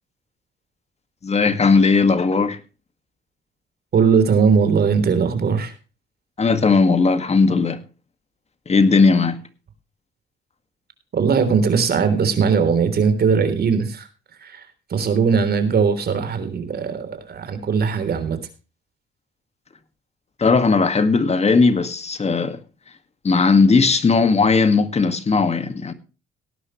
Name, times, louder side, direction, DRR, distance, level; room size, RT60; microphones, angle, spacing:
voice 1, 1.2-2.6 6.4-7.8 8.7-9.4 20.4-22.6 23.2-25.9, left 4 dB, 35° left, 2.0 m, -17 dB
voice 2, 3.9-5.7 11.1-14.1 14.4-18.4, right 6 dB, 55° right, 3.6 m, -19 dB
18.0 x 11.0 x 3.2 m
cardioid pair, 90°, 20 cm